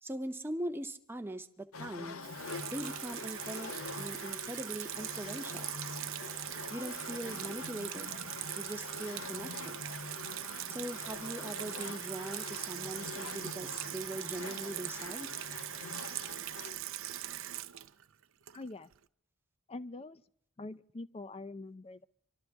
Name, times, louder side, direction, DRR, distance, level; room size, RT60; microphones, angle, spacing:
voice 1, 0.0-2.2 2.7-5.7 6.7-8.1 8.6-9.8 10.7-15.3, right 1 dB, 10° right, 7 dB, 0.7 m, -41 dB
sound 1, 1.7-16.9, left 4 dB, 85° left, 0.8 m, -45 dB
Water tap faucet / Sink (filling or washing), 2.2-18.9, right 13 dB, 70° right, 0.5 m, -41 dB
voice 2, 18.5-18.9 19.7-20.2 20.6-22.0, left 2 dB, 30° left, 14 dB, 0.5 m, -44 dB
25.5 x 12.5 x 3.5 m, 0.74 s
head